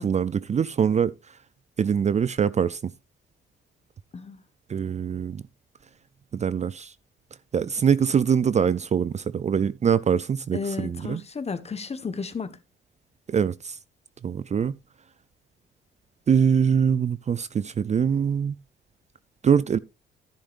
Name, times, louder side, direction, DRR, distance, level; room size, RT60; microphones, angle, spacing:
voice 1, 0.0-1.4 1.8-2.9 4.7-5.4 6.3-6.9 7.5-11.2 13.3-13.8 14.2-14.8 16.3-18.6 19.4-19.8, right 7 dB, 35° right, 0.5 m, -23 dB
voice 2, 10.5-12.6, left 5 dB, 30° left, 1.3 m, -33 dB
11.5 x 10.5 x 2.5 m
cardioid pair, 90°, 20 cm